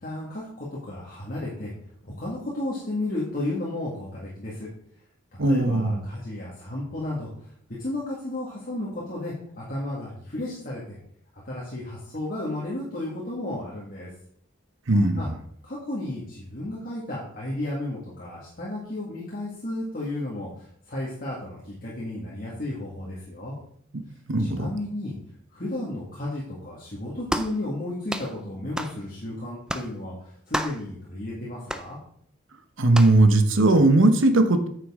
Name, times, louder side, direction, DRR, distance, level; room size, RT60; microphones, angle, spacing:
voice 1, 0.0-1.7 2.0-4.7 5.3-7.3 7.8-11.0 11.5-14.1 14.9-15.3 15.6-23.5 24.4-25.2 25.5-32.0, left 1 dB, 45° left, -6 dB, 1.8 m, -33 dB
voice 2, 5.4-6.0 14.9-15.3 24.3-24.6 32.8-34.7, right 2 dB, 75° right, 8 dB, 1.0 m, -19 dB
sound 1, 27.3-27.6 28.1-28.3 28.8-29.0 29.7-29.9 30.5-30.8 31.7-31.9 32.9-33.2, right 1 dB, 5° right, 0.4 m, -30 dB
9.0 x 6.8 x 3.7 m, 0.65 s
head